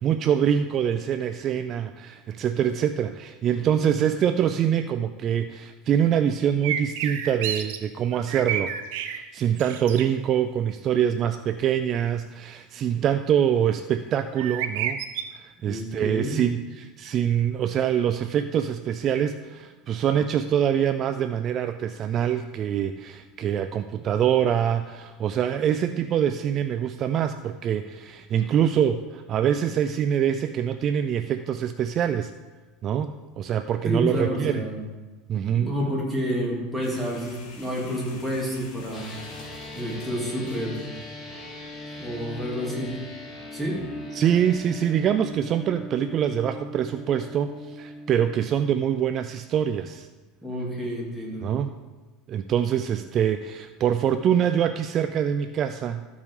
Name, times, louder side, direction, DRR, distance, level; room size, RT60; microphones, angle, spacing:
voice 1, 0.0-8.7 9.3-15.0 15.3-32.3 32.8-34.6 35.3-35.7 44.1-50.1 51.4-51.7 52.3-56.1, right 9 dB, 40° right, 9 dB, 0.4 m, -24 dB
sound 1, 6.6-7.8 8.1-9.2 9.6-10.0 14.4-15.2, right 10 dB, 80° right, 0.8 m, -29 dB
voice 2, 15.6-16.4 33.8-34.8 35.5-39.1 39.7-40.8 42.0-43.0 43.5-43.8 50.4-51.5, equal, ahead, -4 dB, 2.8 m, -29 dB
sound 2, 36.8-42.1, left 4 dB, 60° left, 2.0 m, -49 dB
sound 3, 38.9-48.4, left 1 dB, 20° left, 2.1 m, -39 dB
13.5 x 5.5 x 4.8 m, 1.3 s
supercardioid pair, 125°, 0 cm